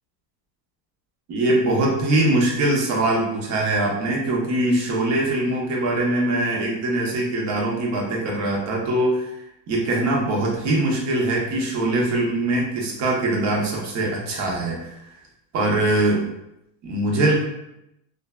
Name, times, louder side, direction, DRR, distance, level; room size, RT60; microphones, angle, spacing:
voice 1, 1.3-15.0 15.5-16.2 16.8-17.3, right 2 dB, 35° right, -2 dB, 0.6 m, -22 dB
2.5 x 2.2 x 2.2 m, 0.85 s
supercardioid pair, 135°, 50 cm